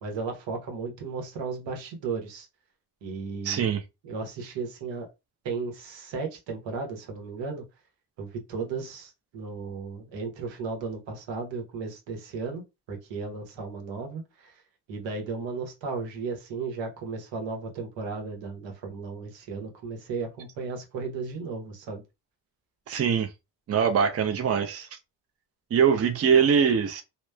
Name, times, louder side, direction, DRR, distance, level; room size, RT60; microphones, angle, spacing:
voice 1, 0.0-2.5 3.0-3.7 4.0-5.1 5.4-7.6 8.2-12.6 12.9-14.5 14.9-22.0, right 4 dB, 85° right, 1.0 m, -35 dB
voice 2, 3.4-3.8 22.9-23.3 23.7-24.9 25.7-27.0, right 7 dB, 35° right, 0.5 m, -22 dB
2.9 x 2.0 x 2.2 m
cardioid pair, 75°, 43 cm